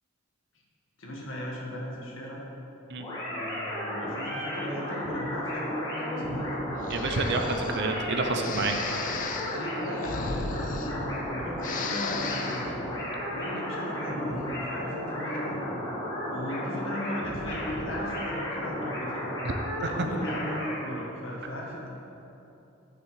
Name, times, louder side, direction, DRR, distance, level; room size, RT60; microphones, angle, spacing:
voice 1, 1.0-2.4 3.3-6.5 9.0-12.8 13.3-15.6 16.3-19.2 19.8-21.9, equal, 70° left, -3 dB, 1.7 m, -36 dB
sound 1, 3.0-20.8, equal, 20° left, 1.8 m, -34 dB
Breathing, 6.8-7.8 8.4-11.3 11.6-12.7, left 5 dB, 40° left, 0.4 m, -36 dB
voice 2, 6.9-8.7 19.4-19.5 19.8-20.1, right 3 dB, 55° right, 4 dB, 0.7 m, -29 dB
9.4 x 6.3 x 4.8 m, 2.9 s
head